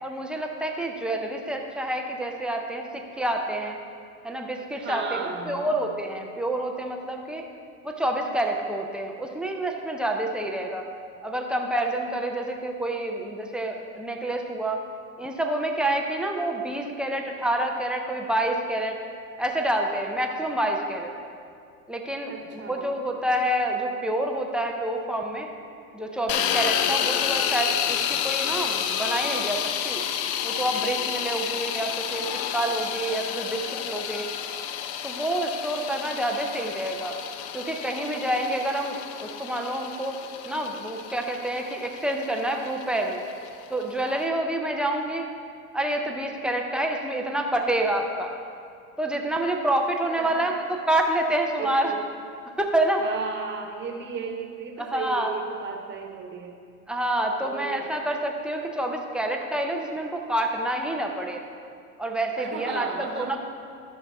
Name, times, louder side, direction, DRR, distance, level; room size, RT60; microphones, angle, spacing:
voice 1, 0.0-3.8 4.2-7.4 7.8-10.9 11.2-14.8 15.2-19.0 19.4-21.1 21.9-25.5 25.9-30.0 30.4-34.3 35.0-37.2 37.5-40.2 40.5-43.2 43.7-45.2 45.7-48.4 49.0-51.9 52.6-53.0 54.8-55.3 56.9-61.4 62.0-63.4, right 1 dB, ahead, 1 dB, 0.4 m, -28 dB
voice 2, 4.7-5.7 22.3-22.9 50.2-50.5 51.6-52.0 53.0-56.6 57.4-57.8 62.4-63.4, right 5 dB, 25° right, 3 dB, 1.1 m, -35 dB
sound 1, 26.3-44.2, left 9 dB, 50° left, 0.6 m, -30 dB
13.0 x 5.7 x 3.4 m, 2.4 s
hypercardioid pair, 105°, 44 cm